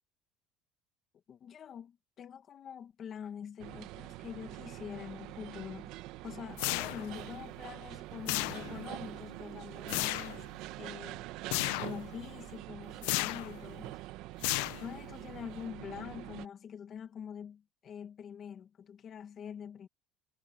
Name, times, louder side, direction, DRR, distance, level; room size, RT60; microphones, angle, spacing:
voice 1, 1.3-5.9 6.2-10.5 10.8-11.3 11.8-14.0 14.8-19.9, left 8 dB, 35° left, 1.8 m, -45 dB
sound 1, 3.6-16.5, right 17 dB, 65° right, 1.1 m, -45 dB
sound 2, 6.6-7.2 8.3-8.9 9.9-10.4 11.5-12.0 13.0-13.6 14.4-15.1, left 21 dB, 85° left, 0.7 m, -33 dB
cardioid pair, 150°, 0 cm